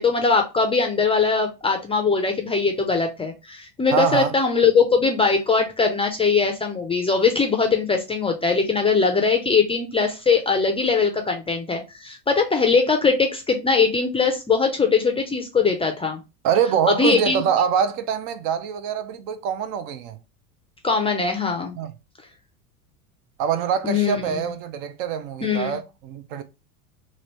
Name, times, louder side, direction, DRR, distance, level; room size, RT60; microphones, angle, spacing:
voice 1, 0.0-16.2 16.9-17.4 20.8-21.8 23.8-24.3 25.4-25.7, left 5 dB, 15° left, 0.4 m, -21 dB
voice 2, 3.9-4.3 16.4-20.2 21.8-21.9 23.4-26.4, right 7 dB, 55° right, 0.6 m, -24 dB
3.0 x 2.6 x 3.0 m
hypercardioid pair, 85°, 45 cm